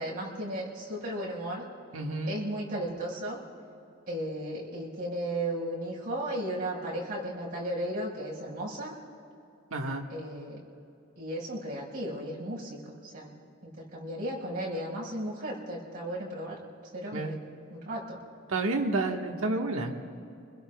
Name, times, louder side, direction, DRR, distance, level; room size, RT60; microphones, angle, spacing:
voice 1, 0.0-1.6 2.3-3.4 4.1-8.9 10.1-10.6 11.1-13.3 13.8-16.6 16.9-17.4 17.7-18.2, right 1 dB, 45° right, -6 dB, 5.1 m, -35 dB
voice 2, 1.9-2.4 9.7-10.0 17.1-17.3 18.5-19.9, right 2 dB, 80° right, 2 dB, 1.4 m, -30 dB
29.0 x 21.0 x 2.3 m, 2.6 s
head